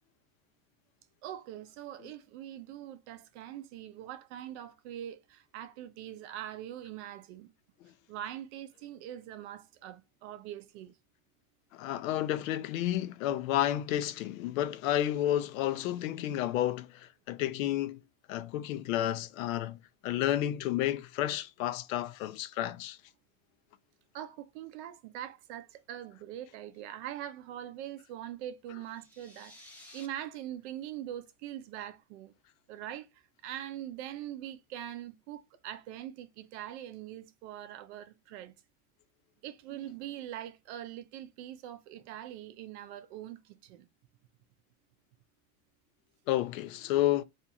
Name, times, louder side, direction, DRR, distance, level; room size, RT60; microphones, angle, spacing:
voice 1, 1.2-7.5 8.1-10.9 24.1-32.4 32.7-38.5 39.4-43.9, right 11 dB, 50° right, 0.5 m, -43 dB
voice 2, 11.7-18.0 18.3-19.8 20.0-23.0 46.3-47.2, left 13 dB, 70° left, 0.5 m, -31 dB
sound 1, 28.8-30.1, left 1 dB, 5° left, 0.6 m, -53 dB
2.5 x 2.4 x 2.7 m
supercardioid pair, 130°, 43 cm